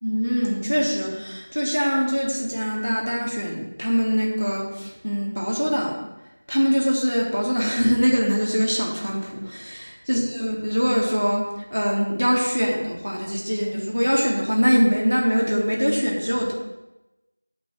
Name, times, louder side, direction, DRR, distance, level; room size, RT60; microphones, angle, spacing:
voice 1, 0.0-6.0 6.5-16.5, equal, 85° right, -1 dB, 3.9 m, -23 dB
8.6 x 5.7 x 7.6 m, 0.99 s
figure-of-eight pair, 180°, 0 cm